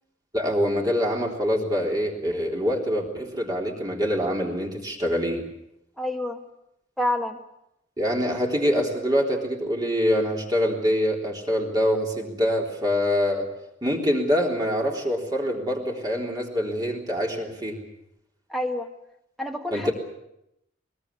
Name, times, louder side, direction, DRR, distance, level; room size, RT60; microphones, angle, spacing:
voice 1, 0.3-5.5 8.0-13.5 13.8-17.8 19.7-19.9, equal, 20° right, 0 dB, 3.7 m, -25 dB
voice 2, 6.0-6.4 7.0-7.4 18.5-18.9 19.4-19.9, left 1 dB, ahead, 1 dB, 2.1 m, -28 dB
21.5 x 21.0 x 8.5 m, 0.83 s
head